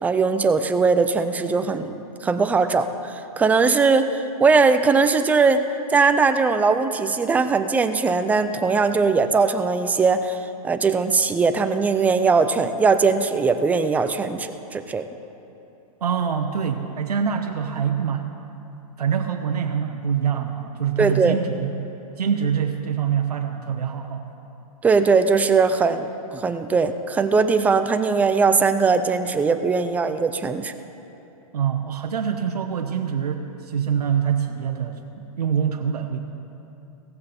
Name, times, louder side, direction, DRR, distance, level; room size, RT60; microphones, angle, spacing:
voice 1, 0.0-15.0 21.0-21.4 24.8-30.7, right 4 dB, 10° right, 9 dB, 0.4 m, -20 dB
voice 2, 16.0-18.4 19.0-21.9 22.2-24.3 31.5-36.2, right 7 dB, 90° right, 5 dB, 0.9 m, -25 dB
16.5 x 14.5 x 4.3 m, 3.0 s
hypercardioid pair, 140°, 20 cm